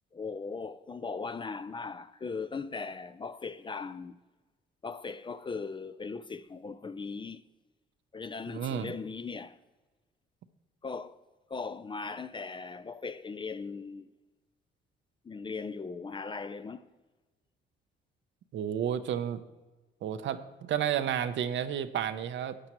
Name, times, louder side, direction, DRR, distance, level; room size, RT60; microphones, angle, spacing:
voice 1, 0.1-4.2 4.8-7.4 8.1-9.6 10.8-11.2 11.5-14.1 15.2-16.8, left 4 dB, 25° left, 0.4 m, -38 dB
voice 2, 8.5-8.9 18.5-19.4 20.0-22.6, right 9 dB, 70° right, 0.7 m, -31 dB
13.0 x 8.6 x 3.0 m
cardioid pair, 90°, 20 cm